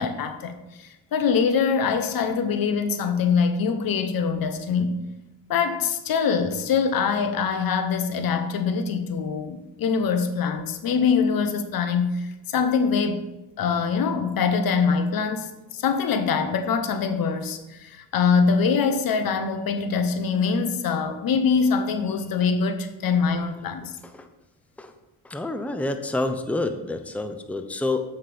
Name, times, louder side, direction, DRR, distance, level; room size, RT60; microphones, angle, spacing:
voice 1, 0.0-5.0 5.5-13.2 13.6-23.9, left 5 dB, 60° left, 9 dB, 1.0 m, -24 dB
voice 2, 25.2-28.0, left 2 dB, 5° left, 8 dB, 0.7 m, -28 dB
7.8 x 5.7 x 5.1 m, 1.0 s
supercardioid pair, 75°, 39 cm